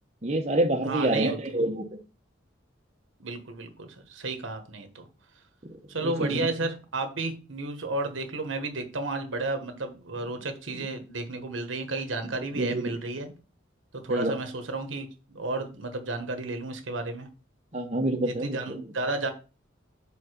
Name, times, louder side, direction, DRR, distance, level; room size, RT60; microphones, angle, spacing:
voice 1, 0.2-2.0 6.0-6.7 10.7-10.9 12.4-13.0 14.1-14.4 17.7-18.8, right 1 dB, 35° right, 1 dB, 0.9 m, -28 dB
voice 2, 0.8-1.4 3.2-5.1 5.9-13.3 13.9-17.3 18.3-19.3, right 2 dB, 75° right, 6 dB, 1.2 m, -32 dB
5.1 x 4.8 x 5.0 m, 0.33 s
head